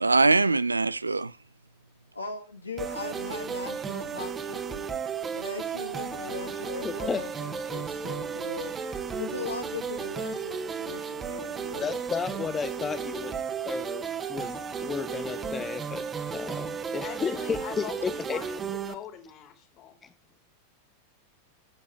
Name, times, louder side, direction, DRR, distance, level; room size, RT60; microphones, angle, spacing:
voice 1, 0.0-1.3, right 3 dB, 80° right, 0.5 m, -22 dB
voice 2, 2.1-4.9 5.3-8.9 9.2-12.0, left 3 dB, 80° left, 2.3 m, -39 dB
sound 1, 2.8-18.9, right 6 dB, 20° right, 1.5 m, -34 dB
voice 3, 6.8-7.3 7.6-7.7 11.8-13.3 13.7-18.4 20.0-20.1, left 6 dB, 20° left, 0.6 m, -33 dB
voice 4, 17.0-20.0, left 9 dB, 35° left, 2.8 m, -42 dB
12.0 x 8.3 x 4.7 m
figure-of-eight pair, 90°, 0 cm